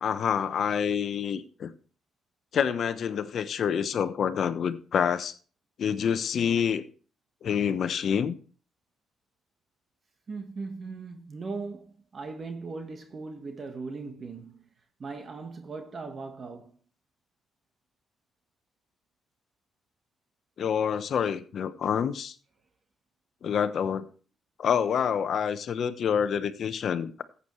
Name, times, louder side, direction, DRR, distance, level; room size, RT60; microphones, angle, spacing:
voice 1, 0.0-1.7 2.5-5.3 5.8-6.8 7.4-8.3 20.6-22.3 23.4-24.1 24.6-27.2, left 7 dB, 60° left, 0.9 m, -27 dB
voice 2, 10.3-14.6 15.0-16.8, right 4 dB, 40° right, 1.4 m, -39 dB
14.5 x 8.3 x 3.1 m
cardioid pair, 90°, 0 cm